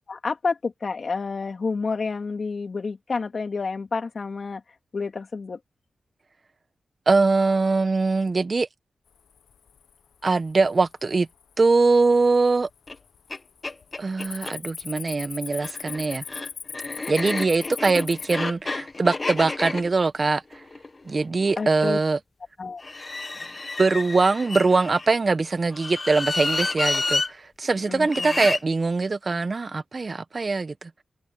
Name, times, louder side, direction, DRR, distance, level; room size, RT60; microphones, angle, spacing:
voice 1, 0.1-4.6 4.9-5.6 21.6-22.0 22.6-22.8 27.9-28.5, left 4 dB, 55° left, 3.2 m, -29 dB
voice 2, 7.1-8.7 10.2-11.3 11.6-12.7 14.0-16.2 17.1-20.4 21.1-22.2 23.8-30.9, right 3 dB, 45° right, 1.2 m, -22 dB
Cricket, 9.4-9.8 10.3-10.7 11.3-11.4 12.0-12.6 12.9-13.2 13.5-18.3, left 7 dB, 80° left, 1.0 m, -38 dB
sound 1, 12.9-13.0 13.3-13.4 13.6-14.6 15.5-21.6 22.8-25.1 25.7-27.3 28.1-28.6, left 3 dB, 40° left, 1.5 m, -30 dB
cardioid pair, 55°, 0 cm